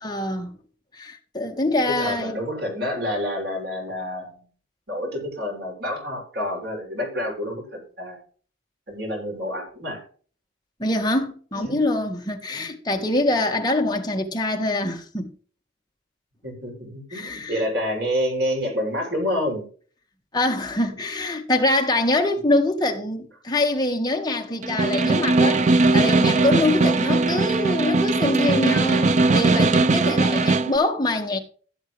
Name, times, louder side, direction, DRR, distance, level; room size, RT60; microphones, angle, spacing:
voice 1, 0.0-0.6 0.9-2.3 10.8-15.3 17.1-17.6 20.3-25.7 25.9-31.4, left 2 dB, 20° left, 1.6 m, -24 dB
voice 2, 1.9-4.4 4.9-8.2 8.9-10.0 11.5-11.8 12.5-12.7 16.4-19.7, equal, 55° right, 6.8 m, -28 dB
Snare drum, 24.6-30.8, right 3 dB, 35° right, 0.6 m, -19 dB
16.5 x 7.4 x 3.3 m
head